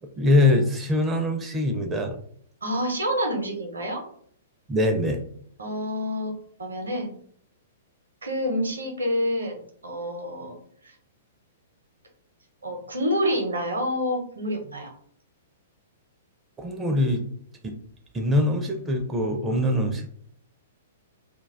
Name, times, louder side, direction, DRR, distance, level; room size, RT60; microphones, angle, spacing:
voice 1, 0.0-2.2 4.7-5.2 16.6-17.2 17.6-17.7 18.1-20.1, left 1 dB, 15° right, 4 dB, 0.4 m, -23 dB
voice 2, 2.6-4.0 5.6-6.3 6.6-7.2 8.2-10.6 10.8-10.9 12.6-14.9, equal, 70° right, 3 dB, 0.7 m, -28 dB
2.2 x 2.2 x 3.3 m, 0.62 s
figure-of-eight pair, 110°, 0 cm